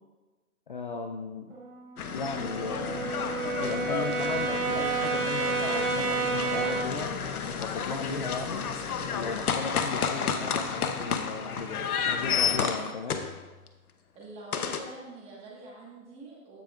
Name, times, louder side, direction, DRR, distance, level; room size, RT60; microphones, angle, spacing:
voice 1, 0.7-1.5 2.1-3.1 3.6-7.1 7.4-8.7 9.1-13.2, left 4 dB, 35° left, 2 dB, 0.4 m, -36 dB
Brass instrument, 1.5-7.0, right 4 dB, 40° right, 1.9 m, -31 dB
sound 1, 2.0-13.7 14.5-14.8, left 7 dB, 80° left, 1.0 m, -31 dB
sound 2, 5.7-12.2, left 2 dB, 5° left, 2.6 m, -47 dB
voice 2, 14.1-16.6, right 2 dB, 15° right, -3 dB, 1.4 m, -45 dB
15.0 x 5.2 x 2.4 m, 1.2 s
hypercardioid pair, 155°, 44 cm